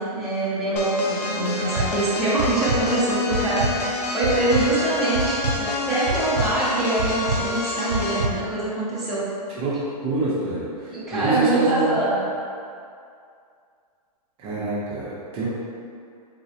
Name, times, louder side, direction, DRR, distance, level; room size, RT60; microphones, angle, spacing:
voice 1, 0.0-9.3 10.9-12.1, right 2 dB, ahead, -12 dB, 0.7 m, -24 dB
sound 1, 0.8-8.4, left 2 dB, 90° left, 0.5 m, -28 dB
sound 2, 1.6-1.9 2.4-2.8 3.3-3.7 4.2-4.6 5.1-5.6 6.1-6.5 7.0-7.4 7.9-8.3, right 3 dB, 80° right, 0.4 m, -25 dB
voice 2, 9.6-12.0 14.4-15.5, right 3 dB, 30° right, -8 dB, 0.7 m, -26 dB
4.0 x 2.4 x 2.8 m, 2.4 s
hypercardioid pair, 130°, 20 cm